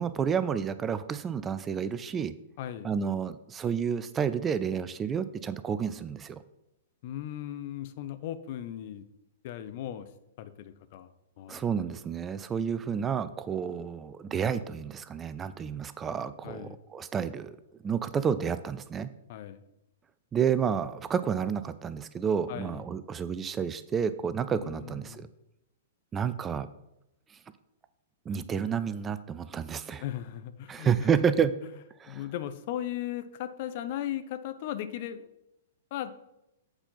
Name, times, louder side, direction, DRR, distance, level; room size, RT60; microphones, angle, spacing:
voice 1, 0.0-2.3 2.8-6.4 11.5-17.6 17.8-19.1 20.3-25.3 26.1-26.7 28.3-30.0 30.7-31.5 32.0-32.2, right 7 dB, 20° right, 14 dB, 0.4 m, -30 dB
voice 2, 2.6-2.9 7.0-9.0 9.4-10.1 10.4-11.1 11.4-11.7 16.4-16.8 19.3-19.6 22.5-22.8 24.6-25.3 30.0-31.2 32.1-35.3 35.9-36.2, left 11 dB, 50° left, 11 dB, 0.7 m, -37 dB
7.9 x 4.2 x 5.7 m, 0.85 s
figure-of-eight pair, 110°, 0 cm